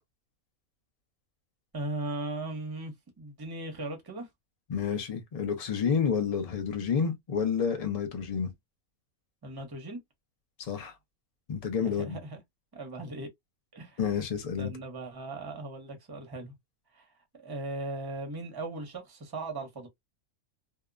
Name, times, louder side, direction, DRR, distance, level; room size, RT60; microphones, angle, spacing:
voice 1, 1.7-4.3 9.4-10.0 11.8-12.4 12.7-13.3 13.7-14.2 14.6-16.6 16.9-17.1 17.3-19.9, right 2 dB, 20° right, 0.7 m, -38 dB
voice 2, 4.7-8.5 10.6-10.9 11.5-12.2 14.0-14.7, left 6 dB, 50° left, 0.4 m, -29 dB
2.8 x 2.1 x 2.4 m
omnidirectional pair, 1.5 m